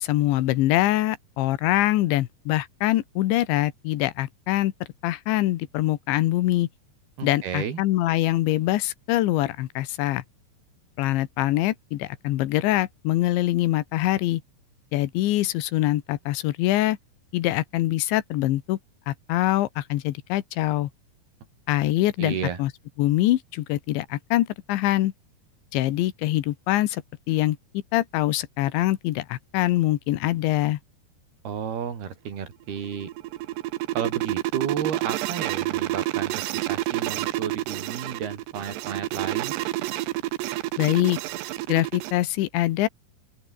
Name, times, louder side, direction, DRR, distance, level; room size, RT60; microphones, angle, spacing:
voice 1, 0.0-4.7 5.0-6.7 7.2-10.2 11.0-14.4 14.9-17.0 17.3-18.8 19.1-20.9 21.7-22.7 23.0-25.1 25.7-27.0 27.3-27.6 27.9-30.8 40.8-41.2 41.7-42.9, left 15 dB, 90° left, 3.6 m, -24 dB
voice 2, 7.2-7.8 22.2-22.6 31.5-33.1 33.9-39.5, right 7 dB, 60° right, 5.5 m, -32 dB
sound 1, 32.7-42.1, right 17 dB, 80° right, 2.9 m, -29 dB
open air
omnidirectional pair, 5.1 m